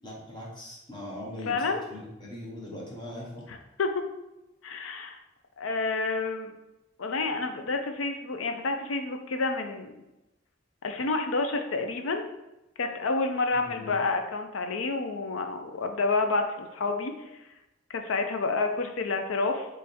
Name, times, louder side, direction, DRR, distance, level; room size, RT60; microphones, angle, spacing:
voice 1, 0.0-1.6 1.9-3.4 13.6-13.9, left 1 dB, 20° left, -4 dB, 1.0 m, -40 dB
voice 2, 1.5-1.8 3.5-4.0 4.6-5.2 5.6-6.5 7.0-9.9 10.8-12.2 12.8-17.4 17.9-19.7, left 3 dB, 90° left, 5 dB, 0.5 m, -29 dB
3.5 x 3.2 x 4.1 m, 0.96 s
head